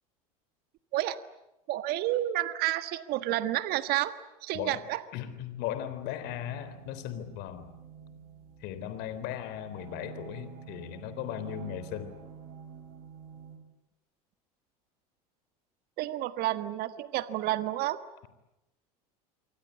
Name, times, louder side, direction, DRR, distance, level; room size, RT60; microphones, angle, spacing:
voice 1, 1.7-4.1 4.4-5.0 16.0-18.0, right 14 dB, 55° right, 12 dB, 1.5 m, -30 dB
voice 2, 5.1-7.7 8.6-12.1, left 11 dB, 60° left, 12 dB, 3.8 m, -37 dB
sound 1, 6.2-13.6, right 7 dB, 75° right, 6.7 m, -48 dB
28.0 x 24.5 x 8.5 m, 0.92 s
hypercardioid pair, 80°, 19 cm